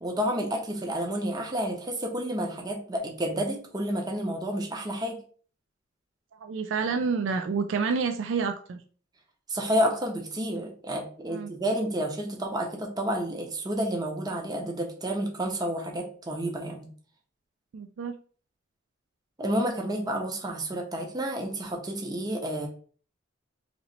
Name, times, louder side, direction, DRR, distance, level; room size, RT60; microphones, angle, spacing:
voice 1, 0.0-5.2 9.5-16.9 19.4-22.7, equal, 20° right, 1 dB, 0.7 m, -30 dB
voice 2, 6.4-8.8 11.3-11.5 17.7-18.1, right 5 dB, 75° right, 5 dB, 0.3 m, -28 dB
3.0 x 2.9 x 3.9 m, 0.43 s
head